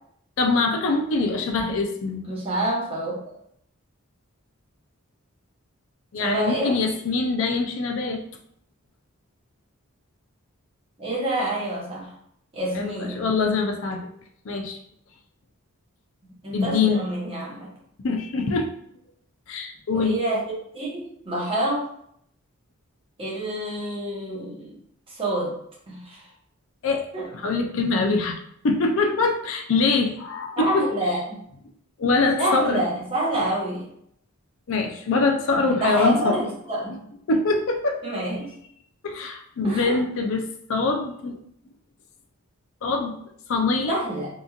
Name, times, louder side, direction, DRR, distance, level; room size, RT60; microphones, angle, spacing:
voice 1, 0.4-2.3 6.1-8.2 12.7-14.1 14.5-14.8 16.5-17.0 18.0-18.7 19.5-20.2 26.8-30.9 32.0-32.8 34.7-36.4 36.9-37.0 37.3-38.0 39.0-41.4 42.8-43.1 43.5-44.0, left 3 dB, 60° left, 3 dB, 0.4 m, -24 dB
voice 2, 2.3-3.2 6.2-6.8 11.0-12.1 12.5-13.2 16.4-17.7 19.9-21.9 23.2-24.8 25.1-25.6 25.9-26.2 27.1-27.3 30.6-31.4 32.4-33.9 35.6-37.1 38.0-38.5 39.6-40.0 43.9-44.3, right 1 dB, 25° right, -5 dB, 0.8 m, -27 dB
2.9 x 2.5 x 2.3 m, 0.69 s
head